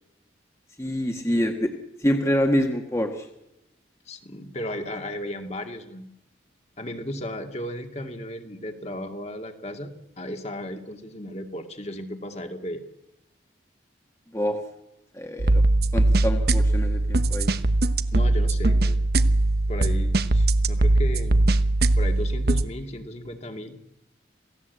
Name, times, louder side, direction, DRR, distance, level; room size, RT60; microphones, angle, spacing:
voice 1, 0.8-1.7 2.0-3.3 14.3-14.6 15.1-15.6 15.9-17.5, equal, 15° left, 3 dB, 1.7 m, -26 dB
voice 2, 4.1-6.0 6.8-12.8 17.7-17.8 18.1-19.0 19.7-21.5 22.0-23.7, left 1 dB, 35° left, 5 dB, 2.2 m, -35 dB
sound 1, 15.4-22.6, right 2 dB, 55° right, 1.0 m, -21 dB
28.0 x 17.5 x 8.2 m, 0.89 s
head